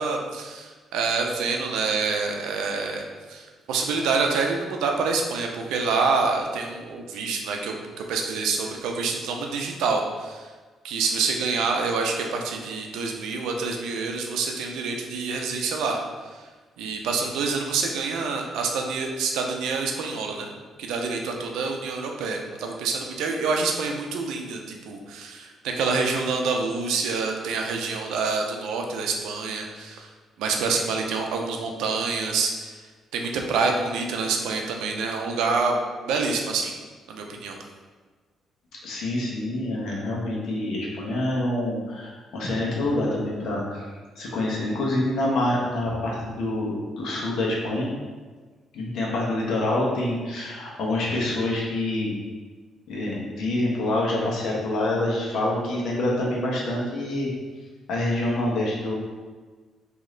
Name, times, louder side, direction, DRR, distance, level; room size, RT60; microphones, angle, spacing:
voice 1, 0.0-10.4 10.8-16.0 16.8-20.5 20.8-30.1 30.4-32.7 33.1-36.7 37.1-37.6, right 4 dB, 90° right, 2 dB, 0.5 m, -27 dB
voice 2, 38.8-43.8 44.2-47.9 48.7-52.1 52.9-57.3 57.9-58.9, left 1 dB, 75° left, -3 dB, 1.0 m, -26 dB
3.1 x 2.8 x 3.8 m, 1.4 s
cardioid pair, 90°, 0 cm